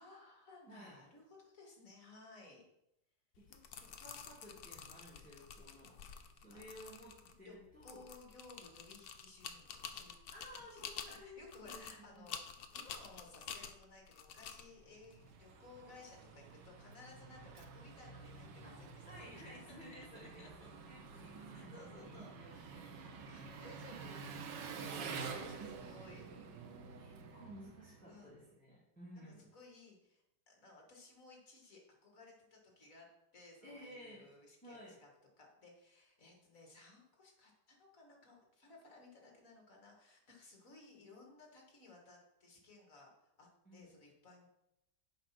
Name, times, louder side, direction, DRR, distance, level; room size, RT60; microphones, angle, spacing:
voice 1, 0.0-2.6 6.5-6.6 7.2-7.5 7.8-10.2 10.7-19.6 20.2-20.7 21.5-22.8 23.3-26.3 28.1-28.3 29.5-33.1 33.3-35.1 35.4-44.5, left 3 dB, 50° left, 0 dB, 2.3 m, -59 dB
voice 2, 0.7-1.0 3.5-3.6 4.0-6.0 6.4-8.0 10.3-12.3 18.6-18.7 19.0-24.2 26.7-29.5 33.6-34.2 34.6-35.0 43.6-43.9, equal, 5° left, -8 dB, 2.0 m, -56 dB
sound 1, 3.4-16.1, left 7 dB, 65° left, 1.2 m, -50 dB
Engine, 14.7-28.3, right 5 dB, 85° right, 1.5 m, -49 dB
7.6 x 5.3 x 6.0 m, 0.85 s
omnidirectional pair, 1.9 m